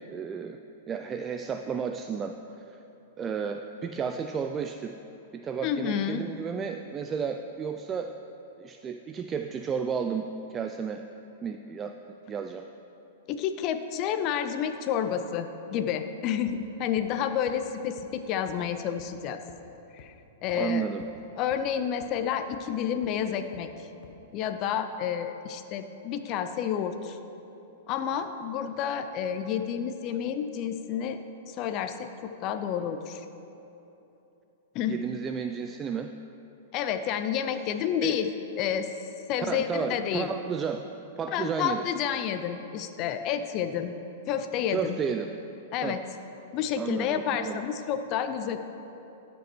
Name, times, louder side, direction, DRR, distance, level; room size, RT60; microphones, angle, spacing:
voice 1, 0.1-0.6 0.9-2.3 2.7-2.8 3.2-4.9 5.3-8.1 8.6-11.0 11.4-11.9 12.3-12.6 20.5-21.0 34.9-36.1 38.0-38.2 39.5-40.8 41.2-41.8 44.7-45.3 45.8-46.0 46.8-47.6, right 6 dB, 20° right, 6 dB, 0.3 m, -32 dB
voice 2, 5.6-6.2 13.3-19.4 19.9-20.1 20.4-20.9 21.4-23.9 24.3-27.2 27.9-31.2 31.5-33.3 34.7-35.0 36.7-38.3 38.6-38.9 39.3-40.3 41.3-43.9 44.3-45.0 45.7-46.0 46.5-48.6, left 8 dB, 40° left, 8 dB, 0.5 m, -30 dB
sound 1, 16.5-16.6 17.0-17.1 17.5-17.6 18.0-18.1 18.5-18.6 19.0-19.1 19.5-19.6 20.0-20.1 20.5-20.6 21.0-21.1 21.5-21.6 22.0-22.1 22.5-22.6 23.0-23.1 23.5-23.6 24.0-24.1, left 8 dB, 60° left, 0.9 m, -50 dB
12.0 x 5.2 x 4.5 m, 3.0 s
hypercardioid pair, 125°, 0 cm